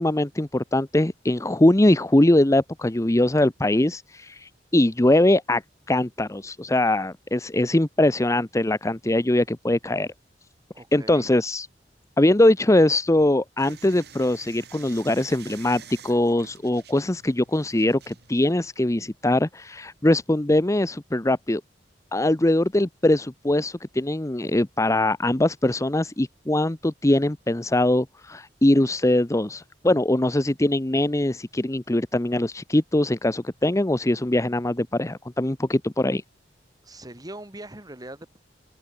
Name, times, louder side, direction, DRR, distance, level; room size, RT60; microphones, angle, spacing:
voice 1, 0.0-5.6 5.9-10.1 10.9-11.7 12.2-21.6 22.1-36.2, left 1 dB, 15° left, 0.8 m, -22 dB
voice 2, 10.7-11.3 36.8-38.4, right 1 dB, 20° right, 3.8 m, -41 dB
sound 1, 13.6-18.5, right 7 dB, 65° right, 4.4 m, -47 dB
open air
head